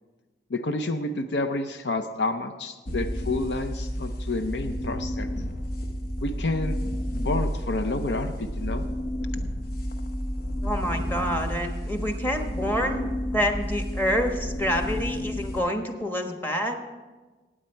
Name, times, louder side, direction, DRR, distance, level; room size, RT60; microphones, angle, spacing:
voice 1, 0.5-5.3 6.2-6.8 7.1-8.8, left 2 dB, 75° left, 8 dB, 0.6 m, -29 dB
sound 1, 2.9-15.6, equal, 55° left, 1.0 m, -31 dB
voice 2, 10.6-16.8, equal, 10° left, 4 dB, 1.1 m, -27 dB
17.5 x 8.7 x 4.5 m, 1.3 s
head